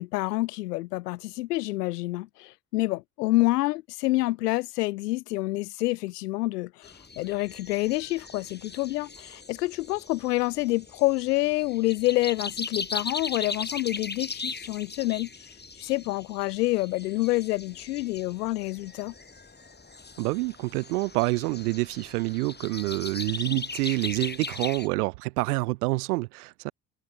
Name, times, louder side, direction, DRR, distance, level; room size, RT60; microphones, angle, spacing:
voice 1, 0.0-15.5 15.8-19.1, left 19 dB, 75° left, 0.7 m, -28 dB
sound 1, 6.8-24.9, left 4 dB, 20° left, 4.6 m, -39 dB
voice 2, 20.2-26.7, right 23 dB, 70° right, 0.8 m, -27 dB
figure-of-eight pair, 50°, 48 cm